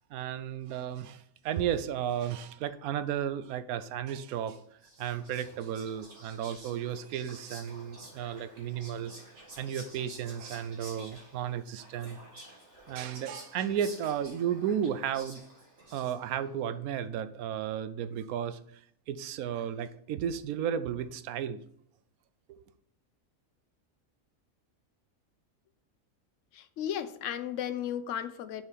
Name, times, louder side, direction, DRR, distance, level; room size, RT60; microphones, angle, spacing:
voice 1, 0.1-4.6 5.0-9.1 9.6-12.2 12.9-15.4 15.9-18.8 19.1-21.6 22.5-22.6, right 9 dB, 90° right, 13 dB, 1.1 m, -34 dB
Whispering, 4.5-16.5, right 1 dB, 50° right, 2.2 m, -51 dB
voice 2, 26.5-28.6, left 10 dB, 70° left, 12 dB, 0.9 m, -35 dB
7.0 x 4.5 x 5.1 m, 0.67 s
omnidirectional pair, 1.5 m